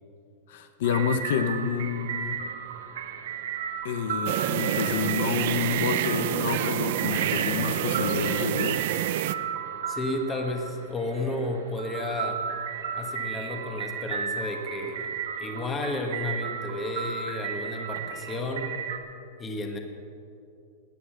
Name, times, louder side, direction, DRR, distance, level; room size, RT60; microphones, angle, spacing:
voice 1, 0.5-2.4 3.8-8.8, left 7 dB, 60° left, 8 dB, 0.9 m, -29 dB
sound 1, 0.8-19.0, right 7 dB, 90° right, 1.6 m, -34 dB
sound 2, 4.3-9.4, right 13 dB, 50° right, 0.5 m, -28 dB
voice 2, 9.9-12.4 13.0-15.1 15.4-18.7 19.4-19.8, left 2 dB, 15° left, 3 dB, 1.3 m, -32 dB
18.5 x 9.5 x 6.5 m, 2.6 s
supercardioid pair, 170°, 0 cm